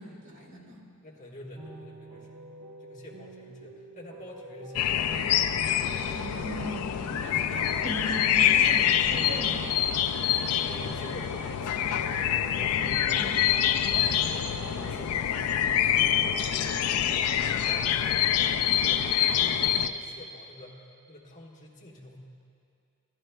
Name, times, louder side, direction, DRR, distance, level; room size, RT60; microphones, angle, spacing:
voice 1, 0.0-0.8 6.1-9.9 12.6-13.5, right 1 dB, 85° right, -4 dB, 2.1 m, -39 dB
voice 2, 1.0-2.5 2.8-5.2 10.6-12.2 13.5-16.5 16.9-22.2, left 1 dB, 35° left, -2 dB, 1.2 m, -46 dB
sound 1, 1.6-15.3, right 1 dB, 45° right, 0.7 m, -47 dB
sound 2, 4.7-19.9, left 10 dB, 75° left, 0.4 m, -26 dB
14.0 x 12.0 x 2.2 m, 2.5 s
head